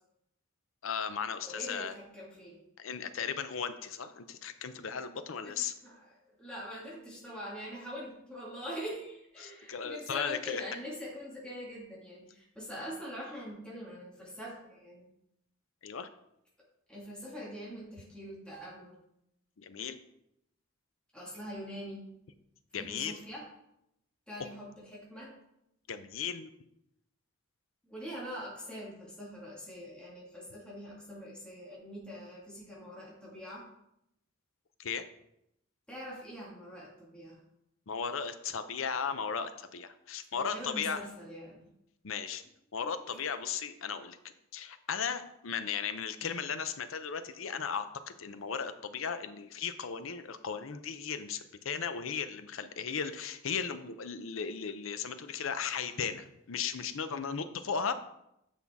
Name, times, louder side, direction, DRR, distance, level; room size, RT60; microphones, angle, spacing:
voice 1, 0.8-1.9 2.8-5.7 9.4-10.6 15.8-16.1 19.6-20.0 22.7-23.2 25.9-26.5 34.8-35.0 37.9-41.0 42.0-42.4 42.7-44.2 44.5-57.9, left 6 dB, 75° left, 10 dB, 0.6 m, -36 dB
voice 2, 1.4-2.6 5.4-15.1 16.9-19.0 21.1-22.1 22.8-23.4 24.3-25.3 27.8-33.6 35.9-37.4 40.3-41.7, equal, 5° left, -6 dB, 1.9 m, -43 dB
8.4 x 5.5 x 3.5 m, 0.81 s
head